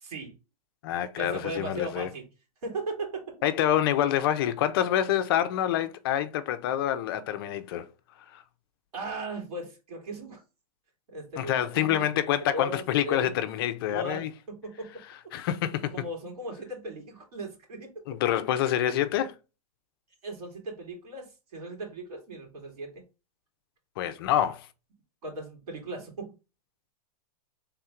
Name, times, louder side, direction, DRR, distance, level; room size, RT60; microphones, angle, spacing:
voice 1, 0.0-0.3 1.2-2.3 2.6-3.3 8.9-10.4 11.1-13.4 13.9-14.9 15.9-17.9 20.2-23.0 25.2-26.3, right 1 dB, 75° right, 2.4 m, -37 dB
voice 2, 0.8-2.1 3.4-7.9 8.3-8.4 11.4-14.3 15.3-15.9 18.1-19.3 24.0-24.7, left 11 dB, 40° left, 0.4 m, -27 dB
4.3 x 3.5 x 2.4 m
supercardioid pair, 160°, 20 cm